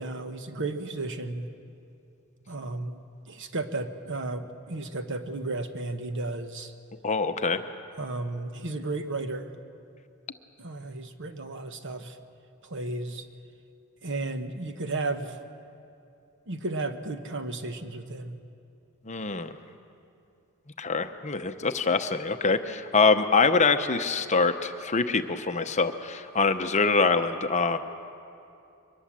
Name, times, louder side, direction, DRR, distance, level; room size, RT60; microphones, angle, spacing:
voice 1, 0.0-1.5 2.5-3.0 3.3-6.7 8.0-9.5 10.6-12.2 12.6-13.3 14.0-15.4 16.5-18.4, right 2 dB, 55° right, 8 dB, 1.1 m, -33 dB
voice 2, 7.0-7.6 19.1-19.5 20.8-27.8, left 4 dB, 30° left, 8 dB, 0.8 m, -24 dB
23.5 x 20.0 x 7.5 m, 2.6 s
head